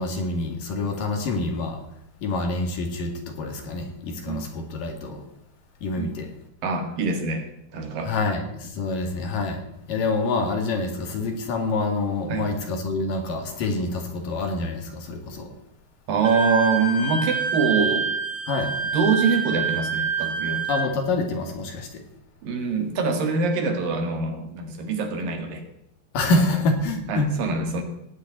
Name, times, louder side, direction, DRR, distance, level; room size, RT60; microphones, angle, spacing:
voice 1, 0.0-1.8 2.2-5.3 5.8-6.3 8.0-9.6 9.9-15.5 18.5-18.7 20.7-22.0 26.1-27.3, left 3 dB, 65° left, 4 dB, 3.5 m, -26 dB
voice 2, 6.6-7.5 7.7-8.1 12.3-12.5 16.1-18.1 18.9-20.6 22.4-25.6 26.4-26.6 27.1-27.8, right 4 dB, 70° right, 5 dB, 3.5 m, -24 dB
Wind instrument woodwind instrument, 16.2-20.9, right 5 dB, 35° right, 3.3 m, -26 dB
17.0 x 6.9 x 9.3 m, 0.80 s
omnidirectional pair, 4.4 m